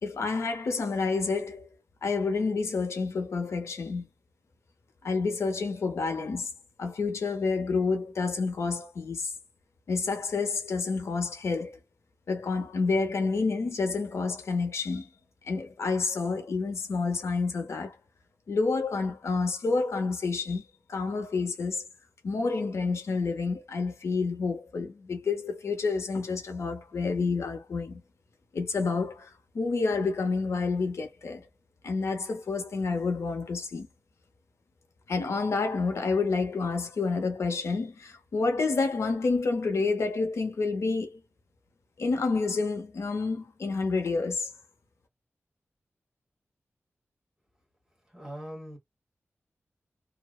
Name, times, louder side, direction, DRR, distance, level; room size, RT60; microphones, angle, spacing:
voice 1, 0.0-1.7 2.0-4.1 5.0-6.5 6.8-9.3 9.9-11.8 12.3-15.1 15.4-18.0 18.5-20.6 20.9-21.8 22.2-28.0 28.5-31.4 31.8-33.9 35.1-41.2 42.0-44.5, left 4 dB, 75° left, 0.7 m, -29 dB
voice 2, 48.1-48.8, equal, 15° right, 1.3 m, -41 dB
2.7 x 2.0 x 2.2 m
wide cardioid pair, 150°, 5 cm